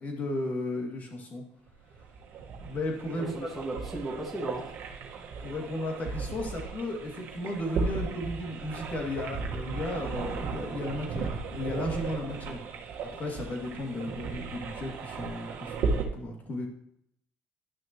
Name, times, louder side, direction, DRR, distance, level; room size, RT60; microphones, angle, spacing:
voice 1, 0.0-1.4 2.6-3.3 5.4-12.7 13.0-16.7, left 1 dB, 40° left, 1 dB, 2.4 m, -35 dB
sound 1, 1.7-16.1, right 4 dB, 65° right, 1.4 m, -36 dB
voice 2, 3.2-4.7, right 1 dB, ahead, -4 dB, 1.7 m, -36 dB
11.0 x 6.1 x 3.0 m, 0.73 s
supercardioid pair, 100°, 4 cm